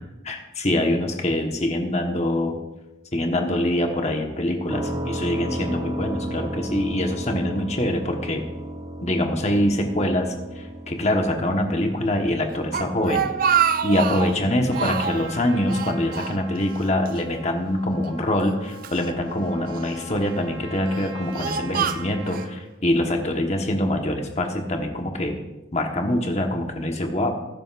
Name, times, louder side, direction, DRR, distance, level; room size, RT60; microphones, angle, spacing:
voice 1, 0.2-2.6 3.1-8.4 9.0-13.5 13.8-25.4 25.7-27.3, left 1 dB, 35° left, 3 dB, 1.3 m, -24 dB
sound 1, 4.7-18.4, right 1 dB, 15° right, 0.8 m, -35 dB
Speech, 12.5-14.4 14.7-15.3 15.7-16.8 17.1-17.2 18.0-19.0 19.7-20.2 20.8-22.5, right 7 dB, 45° right, 0.4 m, -26 dB
Trumpet, 14.7-22.5, right 2 dB, 75° right, 1.7 m, -41 dB
19.5 x 10.5 x 2.5 m, 1.0 s
head